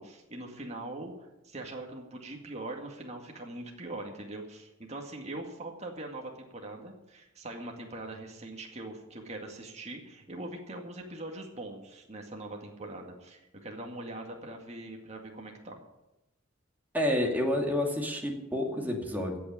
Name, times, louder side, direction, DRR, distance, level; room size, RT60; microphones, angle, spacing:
voice 1, 0.0-15.8, right 2 dB, 35° right, 1 dB, 2.0 m, -42 dB
voice 2, 16.9-19.4, left 1 dB, 10° right, 1 dB, 2.4 m, -29 dB
16.0 x 6.1 x 9.6 m, 0.94 s
head